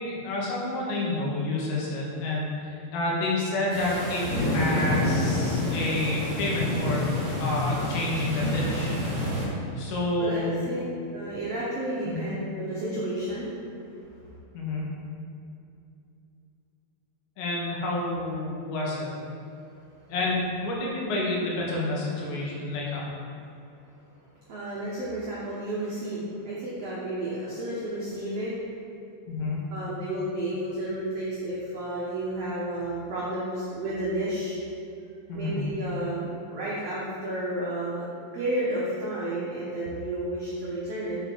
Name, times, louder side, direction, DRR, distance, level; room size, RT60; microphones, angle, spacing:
voice 1, 0.0-7.1 7.4-8.9 9.8-10.6 12.1-12.3 14.5-14.9 17.4-19.1 20.1-23.0 29.3-29.7 35.3-35.6, left 2 dB, 85° left, -4 dB, 3.8 m, -29 dB
sound 1, 3.7-9.4, left 1 dB, 30° right, 1.4 m, -28 dB
voice 2, 10.2-10.8 11.1-13.5 24.5-28.5 29.7-34.6 35.3-38.1 38.3-41.2, right 1 dB, 85° right, -7 dB, 1.3 m, -31 dB
7.6 x 7.1 x 4.6 m, 2.7 s
omnidirectional pair, 5.0 m